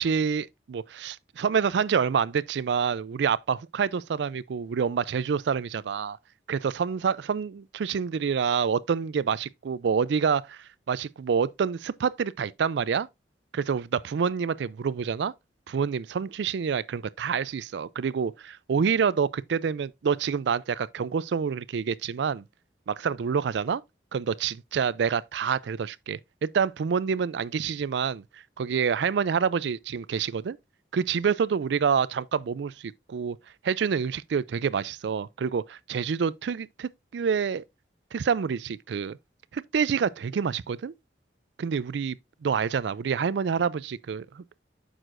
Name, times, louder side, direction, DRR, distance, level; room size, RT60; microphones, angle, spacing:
voice 1, 0.0-6.2 6.5-13.1 13.5-15.3 15.7-22.4 22.9-23.8 24.1-28.2 28.6-30.6 30.9-33.4 33.6-37.6 38.1-39.2 39.5-40.9 41.6-44.4, right 6 dB, 75° right, 0.4 m, -27 dB
8.9 x 6.3 x 2.5 m
head